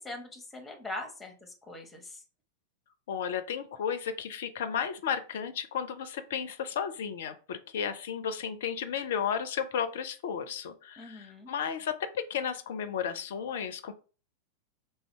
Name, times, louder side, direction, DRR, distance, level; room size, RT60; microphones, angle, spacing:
voice 1, 0.0-2.2 11.0-11.5, left 2 dB, 10° left, 4 dB, 1.0 m, -42 dB
voice 2, 3.1-13.9, left 7 dB, 55° left, 11 dB, 0.5 m, -33 dB
3.3 x 2.7 x 4.4 m, 0.37 s
figure-of-eight pair, 90°, 0 cm